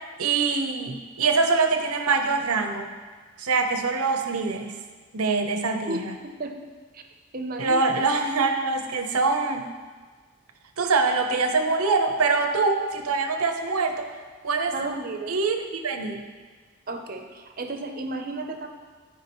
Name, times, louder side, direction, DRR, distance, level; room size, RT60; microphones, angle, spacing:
voice 1, 0.2-2.9 3.4-4.8 5.1-6.1 7.6-9.7 10.8-14.1 14.4-14.7 15.3-16.2, right 4 dB, 90° right, 5 dB, 0.8 m, -24 dB
voice 2, 5.9-6.5 6.9-7.0 7.3-7.8 14.7-15.3 16.9-18.7, right 2 dB, 40° right, 5 dB, 0.7 m, -33 dB
14.0 x 4.9 x 3.0 m, 1.5 s
head